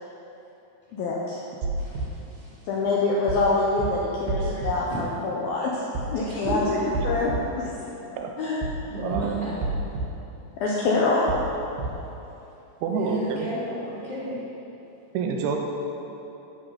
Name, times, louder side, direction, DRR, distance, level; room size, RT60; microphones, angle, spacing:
voice 1, 0.9-1.4 2.7-5.7 6.1-6.6 7.0-7.6 8.4-8.6 10.6-11.2, left 3 dB, 80° left, -4 dB, 2.2 m, -25 dB
sound 1, 1.6-2.1 3.3-3.5 3.8-3.9 4.3-4.7 6.0-6.2 6.5-6.6 6.9-7.4 8.6-8.8 9.1-9.2 9.6-10.1 11.3-11.5 11.8-11.9, right 2 dB, 65° right, 3.2 m, -29 dB
voice 2, 1.8-2.9 4.4-5.1 6.2-7.2 7.6-8.1 8.9-9.6 12.9-14.4, equal, 15° left, -10 dB, 1.7 m, -35 dB
voice 3, 8.9-9.4 12.8-13.5 15.1-15.6, right 6 dB, 80° right, 1 dB, 3.3 m, -27 dB
12.5 x 6.8 x 5.7 m, 2.9 s
omnidirectional pair, 5.4 m